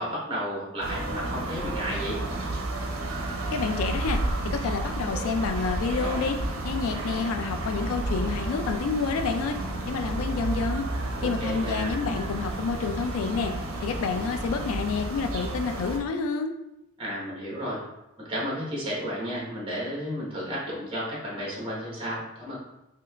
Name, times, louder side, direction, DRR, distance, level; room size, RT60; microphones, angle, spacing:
voice 1, 0.0-2.2 11.2-12.0 17.0-17.8 18.2-22.6, equal, 25° right, -5 dB, 1.1 m, -32 dB
sound 1, 0.8-16.0, right 2 dB, 85° right, 0.5 m, -31 dB
voice 2, 3.5-6.4 6.6-9.6 9.9-10.9 11.2-13.5 13.8-16.5, left 5 dB, 85° left, 6 dB, 0.3 m, -29 dB
3.2 x 2.8 x 2.3 m, 0.90 s
head